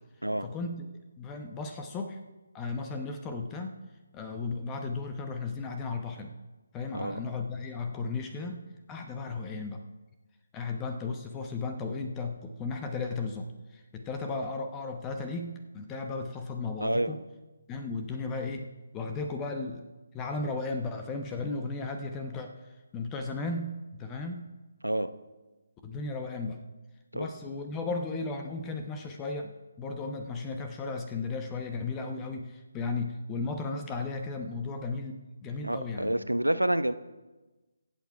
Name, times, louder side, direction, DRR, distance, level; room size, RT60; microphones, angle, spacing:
voice 1, 0.4-2.2 2.5-3.8 4.1-6.3 6.7-8.6 8.9-9.8 10.5-17.2 17.7-18.7 18.9-19.8 20.1-22.5 22.9-24.4 25.8-26.6 27.1-29.5 29.8-36.1, left 3 dB, 15° left, 5 dB, 0.9 m, -35 dB
voice 2, 16.8-17.2 24.8-25.1 27.1-27.3 35.6-36.9, right 1 dB, 85° right, 12 dB, 0.9 m, -28 dB
22.5 x 8.2 x 4.7 m, 1.1 s
figure-of-eight pair, 145°, 0 cm